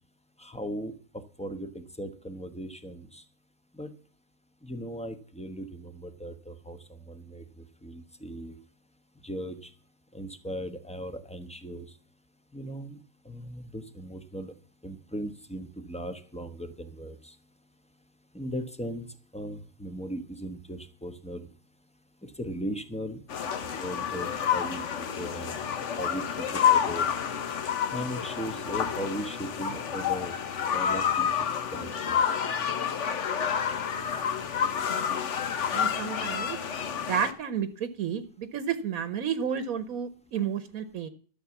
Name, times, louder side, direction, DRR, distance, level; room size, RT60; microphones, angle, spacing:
voice 1, 0.4-1.0 1.4-3.2 3.7-3.9 4.6-7.4 7.8-8.6 9.2-9.7 10.1-11.8 12.5-13.0 13.2-14.5 14.8-17.3 18.3-19.1 19.3-21.5 22.2-23.2 23.8-25.6 26.0-27.1 27.9-30.4 30.7-31.3 31.7-32.2, equal, 5° left, 9 dB, 0.9 m, -38 dB
sound 1, 23.3-37.3, left 8 dB, 60° left, 1.2 m, -29 dB
voice 2, 35.7-36.6 37.0-41.1, right 8 dB, 85° right, 12 dB, 1.3 m, -31 dB
12.5 x 7.0 x 7.1 m, 0.43 s
omnidirectional pair, 1.5 m